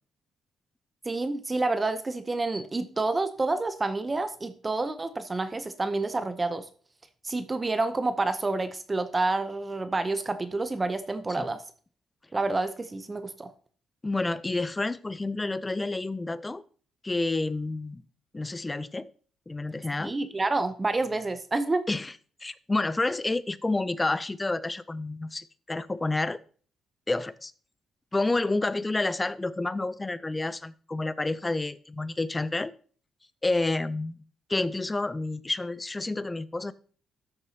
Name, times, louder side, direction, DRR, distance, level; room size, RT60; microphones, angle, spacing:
voice 1, 1.0-6.7 7.2-11.6 12.3-13.5 20.0-21.9, right 3 dB, 25° right, 10 dB, 0.7 m, -28 dB
voice 2, 14.0-16.6 17.0-18.0 18.3-19.1 19.5-20.1 21.9-22.1 22.4-26.4 27.1-27.5 28.1-32.7 33.4-34.2 34.5-36.7, left 2 dB, 20° left, 17 dB, 0.4 m, -29 dB
12.5 x 6.6 x 2.8 m, 0.43 s
cardioid pair, 90°, 0 cm